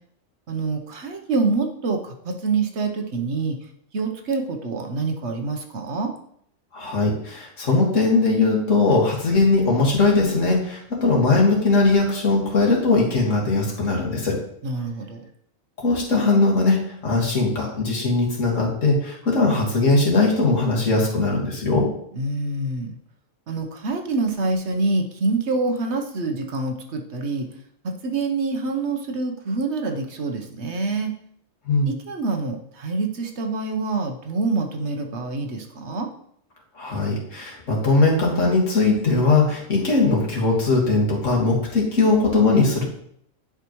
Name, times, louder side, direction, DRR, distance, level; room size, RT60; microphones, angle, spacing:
voice 1, 0.5-6.1 14.6-15.2 22.1-23.0 23.5-27.5 27.8-31.1 31.9-36.1, right 3 dB, 60° right, 4 dB, 1.1 m, -26 dB
voice 2, 6.7-14.4 15.8-21.9 31.7-31.9 36.8-42.8, left 3 dB, 75° left, -3 dB, 2.2 m, -20 dB
10.0 x 4.8 x 3.1 m, 0.68 s
omnidirectional pair, 1.3 m